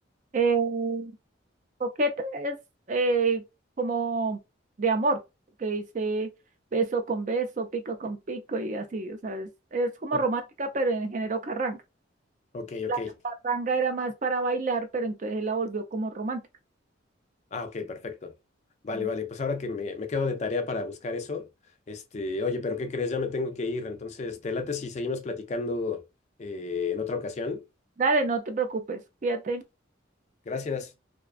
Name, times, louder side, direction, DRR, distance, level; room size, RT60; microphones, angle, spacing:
voice 1, 0.3-1.1 1.8-2.6 2.9-3.4 3.8-4.4 4.8-5.2 5.6-6.3 6.7-11.8 12.9-13.0 13.2-16.4 18.9-19.1 28.0-29.6, right 3 dB, 40° right, 0.4 m, -28 dB
voice 2, 12.5-13.1 17.5-18.3 18.8-21.5 21.9-26.0 26.4-27.6 30.5-30.9, left 4 dB, 35° left, 0.3 m, -31 dB
2.4 x 2.2 x 2.3 m
head